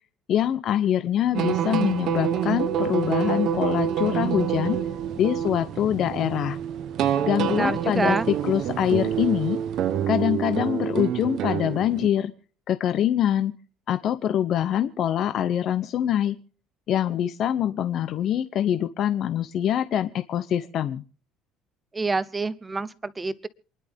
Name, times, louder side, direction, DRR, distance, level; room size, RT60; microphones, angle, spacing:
voice 1, 0.3-4.8 5.2-6.6 7.2-9.6 10.1-12.3 12.7-13.5 13.9-16.4 16.9-21.0, left 10 dB, 40° left, 11 dB, 0.8 m, -24 dB
sound 1, 1.3-12.1, right 9 dB, 50° right, 1.0 m, -27 dB
voice 2, 7.5-8.3 21.9-23.5, right 3 dB, 15° right, 17 dB, 0.7 m, -27 dB
27.5 x 11.0 x 3.5 m, 0.42 s
cardioid pair, 175°, 0 cm